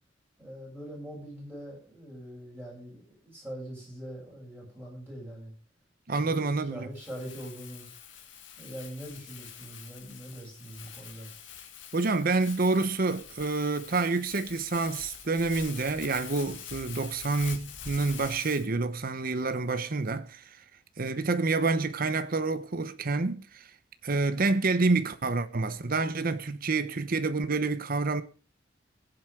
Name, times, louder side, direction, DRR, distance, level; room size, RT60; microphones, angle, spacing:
voice 1, 0.4-5.5 6.1-7.9 8.6-11.3, equal, 10° right, 7.7 m, -43 dB
voice 2, 6.1-6.9 11.9-20.6 21.0-23.6 24.0-28.2, right 3 dB, 50° right, 0.8 m, -28 dB
Crumpling crinkling, 7.0-18.7, left 8 dB, 85° left, 2.0 m, -45 dB
21.0 x 7.7 x 3.6 m
head